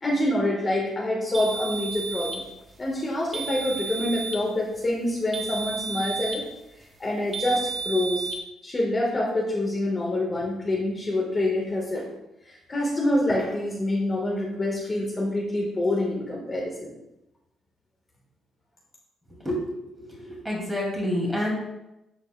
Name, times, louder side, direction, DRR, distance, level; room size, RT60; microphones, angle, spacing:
voice 1, 0.0-2.4 2.8-6.4 7.0-8.2 8.6-12.1 12.4-16.9, left 1 dB, 30° left, -3 dB, 1.5 m, -26 dB
sound 1, 1.3-2.5 3.3-4.5 5.3-6.5 7.3-8.4, right 4 dB, 30° right, 0.9 m, -32 dB
voice 2, 19.9-21.5, left 1 dB, 5° right, -3 dB, 2.5 m, -28 dB
12.0 x 4.1 x 2.3 m, 0.91 s
cardioid pair, 90°, 0 cm